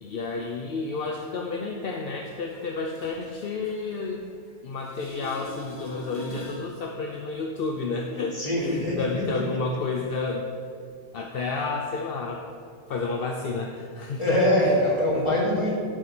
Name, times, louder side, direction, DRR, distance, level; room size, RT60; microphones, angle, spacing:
voice 1, 0.0-4.2 4.6-10.5 11.1-12.4 12.9-14.4 14.6-14.7 15.1-15.3, left 4 dB, 65° left, 1 dB, 0.9 m, -31 dB
sound 1, 2.5-4.5 4.8-6.7 12.4-12.5, left 1 dB, 45° left, 1.3 m, -43 dB
voice 2, 8.3-9.2 14.2-15.7, left 1 dB, 30° left, -6 dB, 2.5 m, -23 dB
11.5 x 4.6 x 5.9 m, 2.3 s
omnidirectional pair, 1.1 m